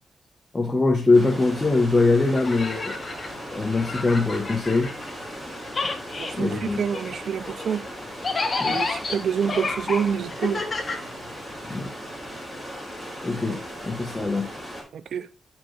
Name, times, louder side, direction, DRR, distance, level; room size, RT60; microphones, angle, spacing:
voice 1, 0.5-3.0 3.5-4.9 6.3-6.8 8.6-8.8 11.7-11.9 13.2-14.5, left 3 dB, 20° left, 1.0 m, -22 dB
sound 1, 1.1-14.8, equal, 5° right, 4.0 m, -38 dB
sound 2, 2.3-5.4 5.7-11.7, left 3 dB, 40° left, 1.4 m, -31 dB
voice 2, 6.2-7.9 8.6-10.6 13.5-13.6 15.1-15.3, right 7 dB, 75° right, 0.5 m, -27 dB
10.0 x 4.5 x 3.2 m
cardioid pair, 90°, 0 cm